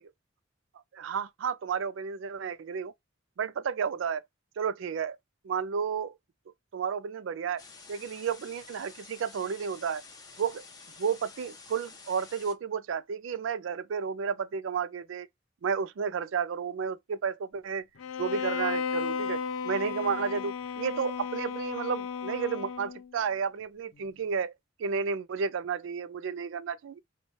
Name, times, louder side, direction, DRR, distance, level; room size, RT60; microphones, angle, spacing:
voice 1, 0.9-2.9 3.4-4.2 4.6-5.2 5.4-6.2 6.7-7.6 7.9-10.0 10.4-10.6 11.0-15.3 15.6-17.8 18.2-24.5 24.8-27.0, right 6 dB, 70° right, 0.4 m, -32 dB
sound 1, 7.6-12.5, left 4 dB, 20° left, 0.7 m, -50 dB
Bowed string instrument, 18.0-23.1, left 6 dB, 85° left, 0.5 m, -34 dB
3.1 x 2.3 x 4.0 m
head